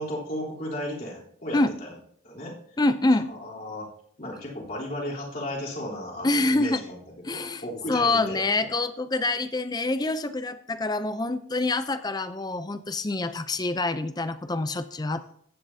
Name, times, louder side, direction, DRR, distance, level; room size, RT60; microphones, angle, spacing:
voice 1, 0.0-1.9 2.2-2.5 3.3-3.9 4.2-8.7, equal, 45° left, -5 dB, 3.6 m, -35 dB
voice 2, 2.8-3.3 6.2-6.8 7.2-7.6 7.9-15.4, left 2 dB, 20° left, 11 dB, 0.5 m, -26 dB
15.0 x 10.0 x 2.8 m, 0.65 s
head